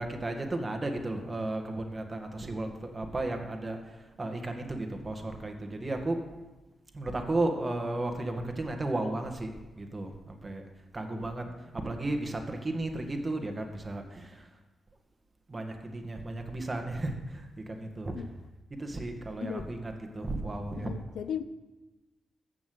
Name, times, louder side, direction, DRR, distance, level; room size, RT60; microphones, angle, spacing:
voice 1, 0.0-3.9 4.2-6.2 6.9-10.6 10.9-11.5 11.8-14.4 15.5-18.1 18.8-20.9, right 2 dB, 30° right, 4 dB, 1.9 m, -34 dB
voice 2, 11.1-11.8 18.1-18.3 19.4-19.7 20.7-21.4, left 8 dB, 90° left, 12 dB, 0.6 m, -38 dB
15.0 x 6.0 x 7.9 m, 1.1 s
cardioid pair, 95°, 0 cm